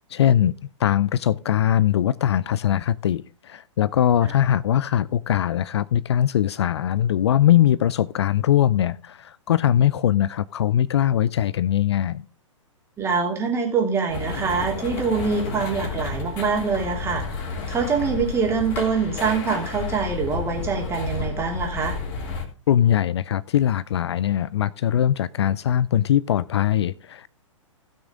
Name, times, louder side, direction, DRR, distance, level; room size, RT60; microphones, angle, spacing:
voice 1, 0.1-12.2 22.7-27.3, left 11 dB, 55° left, 0.4 m, -21 dB
voice 2, 13.0-17.2 17.7-22.0, right 5 dB, 15° right, 2.9 m, -24 dB
sound 1, 14.1-22.4, left 4 dB, 40° left, 3.1 m, -31 dB
16.0 x 6.3 x 3.7 m
figure-of-eight pair, 110°, 17 cm